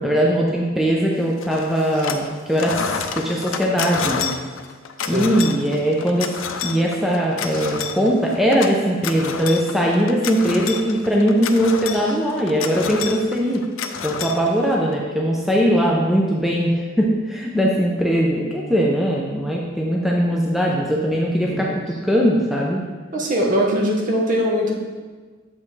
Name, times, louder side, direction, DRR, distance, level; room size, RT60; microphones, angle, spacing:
voice 1, 0.0-4.3 5.1-6.3 6.6-13.6 14.0-21.7 22.0-22.8, equal, ahead, -3 dB, 0.5 m, -20 dB
sound 1, 1.4-2.3 2.5-14.9, left 6 dB, 90° left, 0.5 m, -30 dB
voice 2, 23.1-24.7, equal, 40° right, -1 dB, 1.0 m, -21 dB
7.1 x 5.3 x 3.2 m, 1.4 s
head